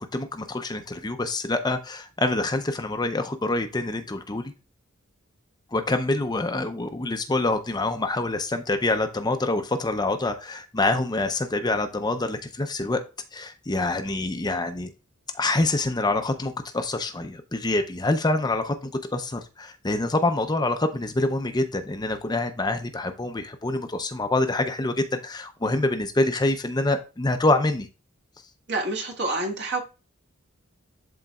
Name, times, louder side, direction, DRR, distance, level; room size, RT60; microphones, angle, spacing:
voice 1, 0.1-4.5 5.7-13.0 13.3-14.9 15.3-27.9, left 2 dB, 20° left, 0.6 m, -26 dB
voice 2, 28.7-29.8, right 2 dB, 55° right, 1.9 m, -27 dB
11.5 x 3.9 x 2.3 m
head